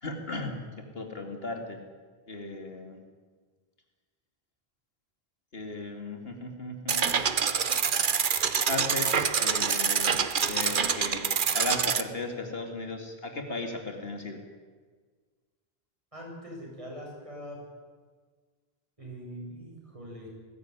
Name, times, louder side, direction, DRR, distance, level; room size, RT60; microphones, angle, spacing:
voice 1, 0.0-1.8 2.3-3.0 5.5-7.1 8.7-10.2 10.4-14.4, left 2 dB, 70° left, 4 dB, 2.8 m, -36 dB
sound 1, 6.9-12.0, right 6 dB, 55° right, 1.1 m, -26 dB
voice 2, 16.1-17.6 19.0-20.3, equal, 30° right, -2 dB, 7.7 m, -42 dB
19.5 x 16.0 x 9.7 m, 1.5 s
omnidirectional pair, 1.0 m